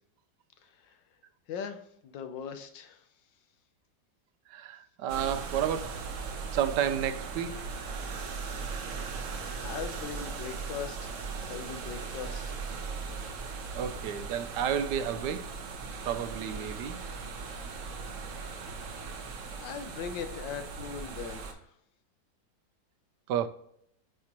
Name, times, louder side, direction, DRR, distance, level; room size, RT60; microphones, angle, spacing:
voice 1, 0.6-1.0 1.5-3.1 9.6-11.2 11.4-12.6 18.6-18.7 19.5-21.8, left 7 dB, 85° left, 1.5 m, -40 dB
voice 2, 4.5-6.1 6.5-7.8 13.7-15.6 16.0-17.0 23.3-23.5, right 9 dB, 75° right, 1.2 m, -31 dB
sound 1, 5.1-21.5, right 4 dB, 55° right, 1.0 m, -38 dB
8.5 x 4.4 x 2.9 m
omnidirectional pair, 1.9 m